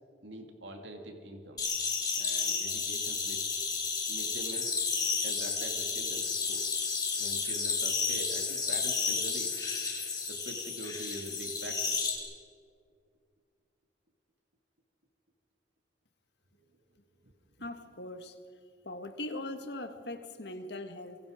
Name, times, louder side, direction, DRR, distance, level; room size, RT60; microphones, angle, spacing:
voice 1, 0.2-1.6 2.2-3.4 4.1-4.8 5.2-6.7 7.1-9.5 10.3-12.0, right 1 dB, 75° right, 4 dB, 2.3 m, -44 dB
sound 1, 1.6-12.1, left 5 dB, 20° left, 3.9 m, -32 dB
voice 2, 17.6-18.4 18.8-21.2, left 1 dB, 60° left, 7 dB, 1.8 m, -40 dB
26.5 x 23.5 x 5.1 m, 2.2 s
head